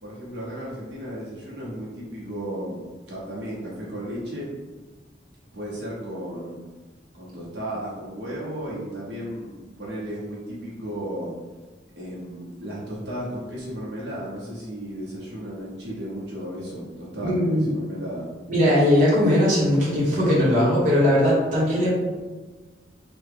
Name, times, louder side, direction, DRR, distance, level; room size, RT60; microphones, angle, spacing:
voice 1, 0.0-4.5 5.5-6.6 7.1-11.3 12.0-18.3, equal, 70° right, -7 dB, 0.9 m, -34 dB
voice 2, 17.2-17.7 18.5-21.9, left 1 dB, 40° right, -7 dB, 1.0 m, -19 dB
3.4 x 2.3 x 3.5 m, 1.3 s
head